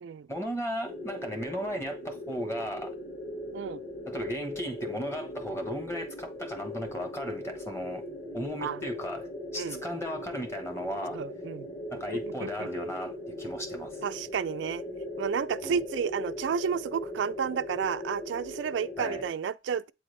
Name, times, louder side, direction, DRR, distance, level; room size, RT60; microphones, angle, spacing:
voice 1, 0.3-2.9 4.1-8.0 8.3-9.3 9.5-11.2 11.9-14.0 15.6-15.8 19.0-19.2, equal, 15° left, 1.1 m, -35 dB
sound 1, 0.8-19.3, left 1 dB, 45° left, 1.7 m, -39 dB
voice 2, 11.1-11.7 12.4-12.7 14.0-14.8 15.2-19.9, right 7 dB, 85° right, 0.3 m, -31 dB
8.3 x 3.5 x 3.2 m
head